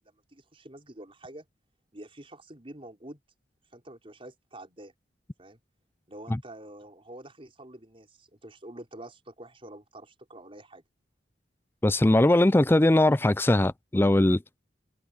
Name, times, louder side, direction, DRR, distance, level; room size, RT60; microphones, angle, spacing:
voice 1, 0.3-1.5 1.9-3.2 3.7-4.9 5.4-5.6 6.1-10.8, right 1 dB, 30° right, 5.3 m, -47 dB
voice 2, 11.8-14.4, left 1 dB, 15° left, 0.4 m, -20 dB
head